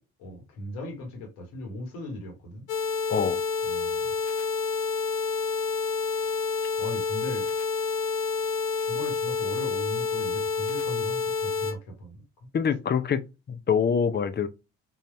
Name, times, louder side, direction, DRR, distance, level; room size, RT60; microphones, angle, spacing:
voice 1, 0.2-2.6 3.6-4.1 6.2-6.4 6.8-7.5 8.8-12.2, left 1 dB, 70° left, 1.5 m, -38 dB
sound 1, 2.7-11.7, left 5 dB, 90° left, 0.8 m, -28 dB
voice 2, 3.1-3.4 12.5-13.2 13.5-14.5, left 7 dB, 25° left, 0.6 m, -25 dB
3.9 x 2.7 x 3.2 m
hypercardioid pair, 55°, 38 cm